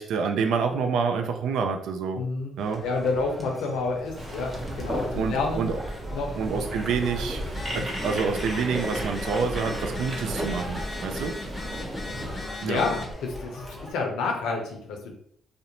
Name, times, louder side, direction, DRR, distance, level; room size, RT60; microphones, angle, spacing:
voice 1, 0.0-2.2 2.6-2.8 5.1-5.8 6.4-7.4 7.7-11.4 12.6-12.8, right 5 dB, 80° right, 5 dB, 0.3 m, -27 dB
voice 2, 2.2-2.6 2.8-4.5 4.8-5.7 6.1-6.4 7.7-7.8 12.6-15.1, left 3 dB, 85° left, 2 dB, 0.6 m, -29 dB
sound 1, 2.6-13.9, equal, 5° right, 0.8 m, -41 dB
sound 2, 4.1-12.4, right 1 dB, 40° right, 0.8 m, -34 dB
Telephone, 7.4-13.1, left 3 dB, 25° left, 0.6 m, -38 dB
2.5 x 2.0 x 2.9 m, 0.67 s
cardioid pair, 75°, 0 cm